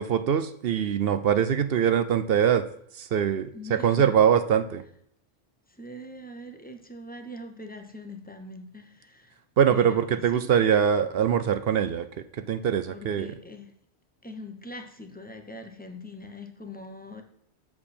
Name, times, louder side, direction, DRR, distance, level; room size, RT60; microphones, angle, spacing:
voice 1, 0.0-2.7 2.9-4.8 9.6-12.1 12.5-13.3, right 8 dB, 60° right, 11 dB, 0.7 m, -23 dB
voice 2, 3.5-4.1 5.7-9.4 9.7-10.5 12.9-13.7 14.2-17.2, left 1 dB, 10° left, 5 dB, 0.8 m, -42 dB
7.6 x 6.9 x 4.3 m, 0.68 s
omnidirectional pair, 1.3 m